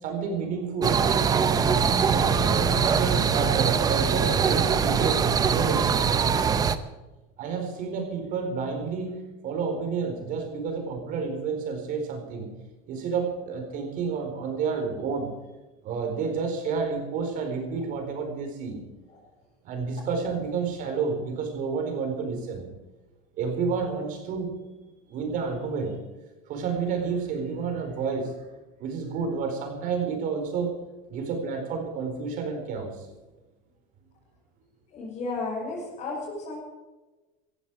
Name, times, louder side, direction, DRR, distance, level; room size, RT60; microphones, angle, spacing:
voice 1, 0.0-1.0 2.0-5.9 7.4-12.5 12.9-15.4 15.8-18.8 19.6-22.7 23.4-24.6 25.1-26.0 26.5-28.4 28.8-30.8 31.1-33.1, right 5 dB, 45° right, 5 dB, 4.5 m, -30 dB
sound 1, 0.8-6.8, right 6 dB, 20° right, 0.8 m, -22 dB
voice 2, 34.9-36.6, left 3 dB, 35° left, -5 dB, 6.6 m, -33 dB
17.0 x 15.0 x 4.8 m, 1.2 s
cardioid pair, 160°, 20 cm